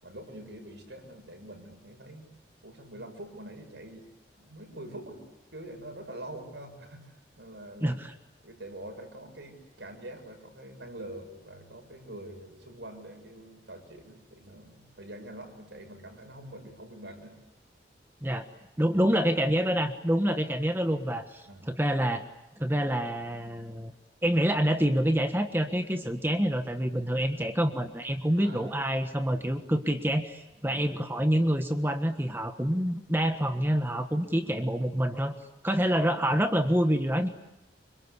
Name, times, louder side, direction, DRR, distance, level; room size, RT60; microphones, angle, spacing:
voice 1, 0.0-2.3 2.6-4.1 4.4-5.2 5.5-8.0 8.4-17.4 21.5-21.7 28.4-28.7 29.3-29.5 30.6-30.8, right 1 dB, 90° right, 5 dB, 7.1 m, -45 dB
voice 2, 7.8-8.1 18.2-18.4 18.8-22.2 22.6-23.9 24.2-35.3 35.6-37.3, equal, 10° right, 7 dB, 1.5 m, -27 dB
27.0 x 25.0 x 8.4 m, 0.97 s
head